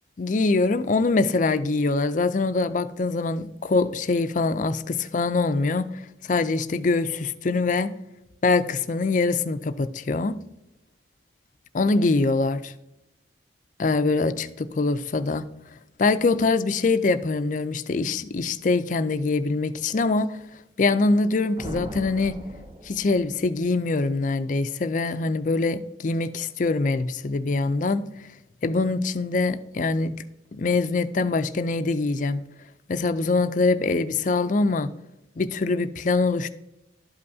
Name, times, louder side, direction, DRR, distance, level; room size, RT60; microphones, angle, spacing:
voice 1, 0.2-7.9 8.4-10.4 11.7-12.7 13.8-15.5 16.0-20.4 20.8-22.4 22.8-28.1 28.6-30.1 30.5-32.4 32.9-34.9 35.4-36.5, left 3 dB, 40° left, 12 dB, 0.4 m, -24 dB
sound 1, 21.6-23.5, right 1 dB, 25° right, 0.6 m, -39 dB
12.0 x 5.4 x 2.7 m, 0.90 s
head